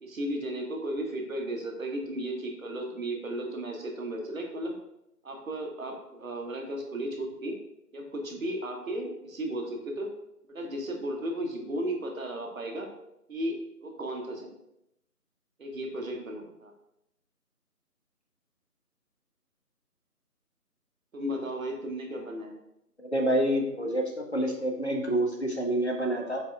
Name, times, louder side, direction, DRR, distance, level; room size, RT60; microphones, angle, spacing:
voice 1, 0.0-4.7 5.2-7.6 7.9-10.1 10.5-12.9 13.3-14.6 15.6-16.7 21.1-22.5, right 1 dB, 60° right, 2 dB, 0.8 m, -34 dB
voice 2, 23.0-26.4, right 1 dB, 45° left, 2 dB, 0.4 m, -28 dB
4.2 x 3.0 x 2.3 m, 0.82 s
figure-of-eight pair, 170°, 47 cm